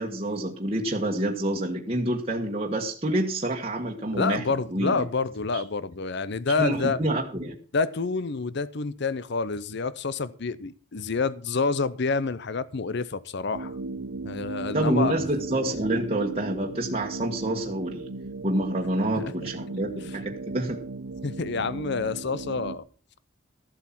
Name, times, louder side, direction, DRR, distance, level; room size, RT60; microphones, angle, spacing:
voice 1, 0.0-4.4 4.7-5.0 6.6-7.5 14.7-18.1 18.4-20.8, right 1 dB, 30° right, 1.4 m, -27 dB
voice 2, 4.1-7.0 7.7-13.8 14.2-15.2 19.0-19.3 21.2-22.8, left 4 dB, 55° left, 0.7 m, -28 dB
sound 1, 13.5-22.8, right 3 dB, 80° right, 0.9 m, -37 dB
14.0 x 7.9 x 5.9 m
head